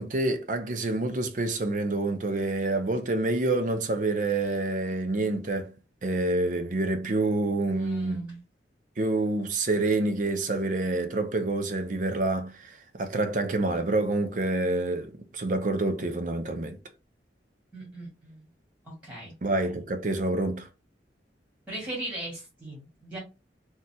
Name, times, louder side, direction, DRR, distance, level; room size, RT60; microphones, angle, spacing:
voice 1, 0.0-5.7 6.0-8.3 9.0-16.8 19.4-20.7, right 2 dB, 45° right, 0.5 m, -27 dB
voice 2, 7.8-8.4 17.7-18.5 18.8-19.3 21.7-23.2, right 1 dB, 10° right, 1.9 m, -38 dB
4.0 x 2.4 x 2.2 m
head